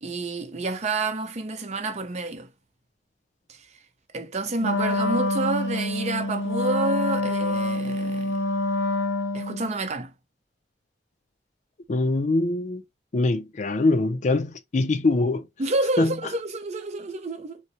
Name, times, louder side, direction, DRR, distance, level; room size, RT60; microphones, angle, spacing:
voice 1, 0.0-2.5 3.5-3.6 4.1-8.4 9.3-10.1 15.6-17.6, right 2 dB, 40° right, 0.6 m, -29 dB
Wind instrument woodwind instrument, 4.6-9.7, left 2 dB, 85° left, 0.7 m, -26 dB
voice 2, 11.9-12.8 13.1-15.5 16.0-16.2, left 2 dB, 45° left, 0.4 m, -23 dB
4.0 x 2.1 x 2.8 m
head